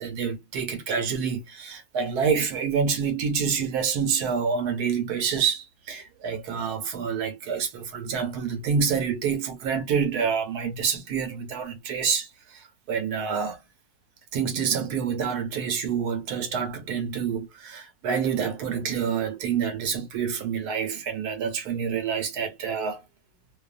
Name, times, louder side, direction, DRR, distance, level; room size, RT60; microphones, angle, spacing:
voice 1, 0.0-13.6 14.3-23.0, right 6 dB, 85° right, 1.2 m, -27 dB
2.7 x 2.3 x 2.3 m
omnidirectional pair, 1.7 m